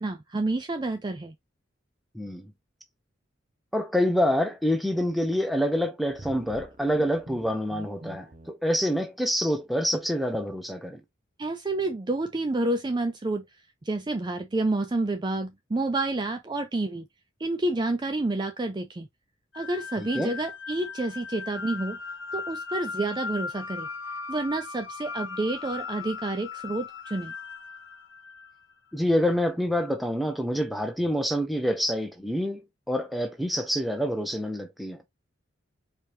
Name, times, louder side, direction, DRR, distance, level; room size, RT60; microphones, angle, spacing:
voice 1, 0.0-1.3 11.4-13.4 13.8-17.1 17.4-19.1 19.5-22.0 22.3-23.9 24.3-27.3, right 2 dB, 20° right, 0.4 m, -29 dB
voice 2, 2.1-2.5 3.7-11.0 20.0-20.3 28.9-35.0, equal, ahead, 0.8 m, -27 dB
sound 1, 6.0-8.5, right 1 dB, 40° right, 0.9 m, -44 dB
sound 2, 19.5-28.7, left 5 dB, 70° left, 1.4 m, -38 dB
4.6 x 3.3 x 2.8 m
head